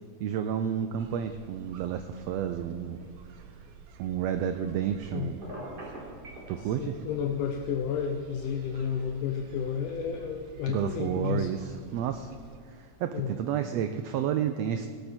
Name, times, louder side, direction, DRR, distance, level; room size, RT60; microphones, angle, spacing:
voice 1, 0.2-3.1 4.0-5.4 6.5-7.0 10.7-12.3 12.6-14.9, right 9 dB, 85° right, 8 dB, 1.4 m, -31 dB
sound 1, 1.0-12.6, right 6 dB, 70° right, 1.6 m, -50 dB
Telephone, 5.4-6.5, right 1 dB, 30° right, 4.0 m, -40 dB
voice 2, 6.8-11.5 13.1-13.3, left 7 dB, 90° left, 3 dB, 2.3 m, -31 dB
17.5 x 12.5 x 4.3 m, 2.3 s
omnidirectional pair, 3.5 m